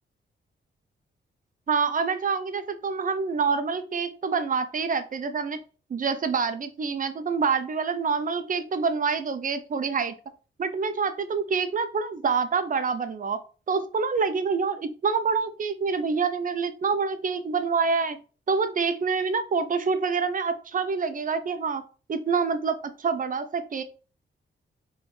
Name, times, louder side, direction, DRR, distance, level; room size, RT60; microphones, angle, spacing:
voice 1, 1.7-5.6 5.9-10.1 10.6-13.4 13.7-18.2 18.5-21.8 22.1-23.8, right 5 dB, 40° right, 10 dB, 0.6 m, -26 dB
4.6 x 3.2 x 3.2 m, 0.36 s
wide cardioid pair, 125°, 21 cm